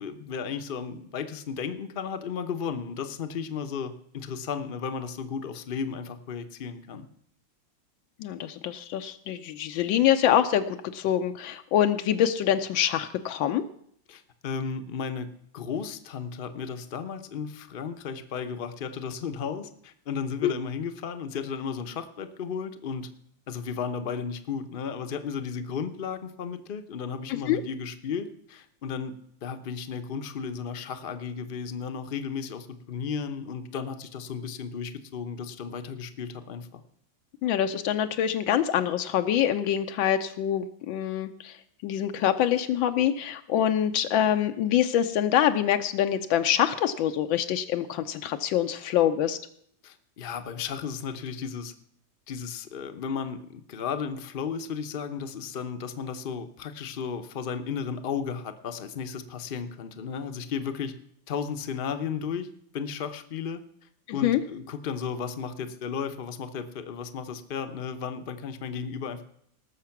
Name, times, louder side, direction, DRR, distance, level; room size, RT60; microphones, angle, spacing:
voice 1, 0.0-7.1 14.1-23.1 23.5-36.8 49.8-51.7 52.3-60.9 61.3-62.5 62.7-63.6 64.1-69.2, left 6 dB, 50° left, 9 dB, 0.6 m, -34 dB
voice 2, 8.2-13.6 20.4-20.5 27.3-27.6 37.4-49.4 64.1-64.4, left 10 dB, 85° left, 8 dB, 1.4 m, -25 dB
18.5 x 6.7 x 5.8 m, 0.70 s
omnidirectional pair, 2.1 m